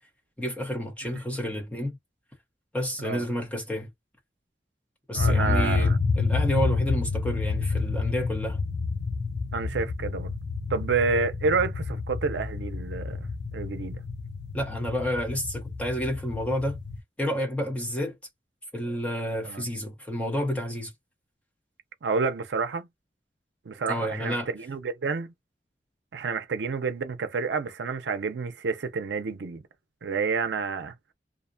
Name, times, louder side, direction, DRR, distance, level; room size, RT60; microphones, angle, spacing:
voice 1, 0.4-2.0 2.7-3.9 5.1-8.6 14.5-16.8 17.2-18.2 18.7-20.9 23.9-24.5, equal, 10° left, 0.7 m, -30 dB
voice 2, 5.1-6.0 9.5-10.3 10.7-13.2 13.5-14.0 19.4-19.7 22.0-22.9 23.7-25.3 26.1-29.6 30.0-30.9, right 4 dB, 85° right, 0.5 m, -29 dB
sound 1, 5.2-17.0, left 4 dB, 80° left, 0.5 m, -29 dB
2.5 x 2.1 x 2.5 m
head